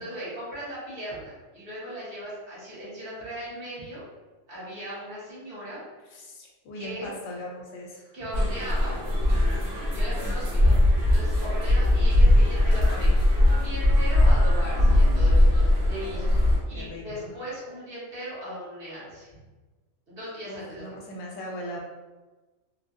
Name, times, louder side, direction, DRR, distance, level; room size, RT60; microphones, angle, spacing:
voice 1, 0.0-4.0 4.5-5.8 6.2-6.3 6.7-7.1 8.1-8.9 9.9-10.8 11.1-16.3 16.7-19.3 20.1-21.0, equal, 50° right, -9 dB, 1.4 m, -38 dB
voice 2, 6.1-8.0 16.1-17.3 20.5-21.8, left 1 dB, 90° left, -1 dB, 1.0 m, -39 dB
sound 1, 8.3-16.6, left 1 dB, 75° right, 1.2 m, -20 dB
3.2 x 2.2 x 2.5 m, 1.2 s
omnidirectional pair, 1.3 m